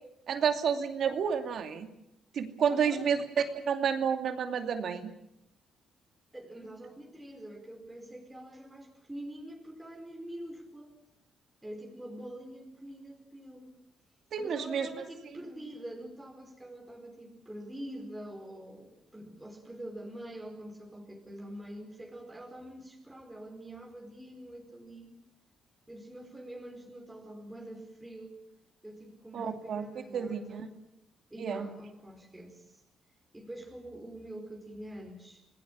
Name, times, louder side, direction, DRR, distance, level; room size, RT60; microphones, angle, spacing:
voice 1, 0.3-1.9 2.3-5.1 14.3-14.9 29.3-30.7 31.4-31.7, right 7 dB, 65° right, 6 dB, 2.6 m, -30 dB
voice 2, 2.7-3.1 6.3-10.9 11.6-13.7 14.4-25.1 25.9-28.4 28.8-30.8 31.3-32.8 33.3-35.4, right 1 dB, 10° right, 0 dB, 4.7 m, -45 dB
27.0 x 19.0 x 7.4 m, 0.81 s
cardioid pair, 90°, 0 cm